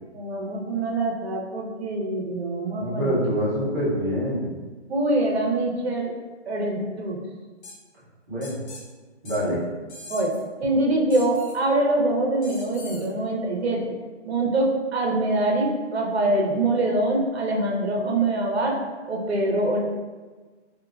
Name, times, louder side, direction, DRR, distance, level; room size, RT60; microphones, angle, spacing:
voice 1, 0.1-3.2 4.9-6.1 6.5-7.2 10.1-10.3 10.6-13.9 14.2-18.8 19.1-19.8, right 2 dB, 60° right, 0 dB, 0.8 m, -24 dB
voice 2, 2.8-4.5 8.3-8.5 9.2-9.6, equal, 20° right, -10 dB, 0.8 m, -25 dB
sound 1, 7.6-7.8 8.4-8.8 9.2-9.4 9.9-10.4 11.1-11.6 12.4-13.1, left 3 dB, 70° left, 0.8 m, -42 dB
3.3 x 2.8 x 2.4 m, 1.3 s
hypercardioid pair, 170°, 35 cm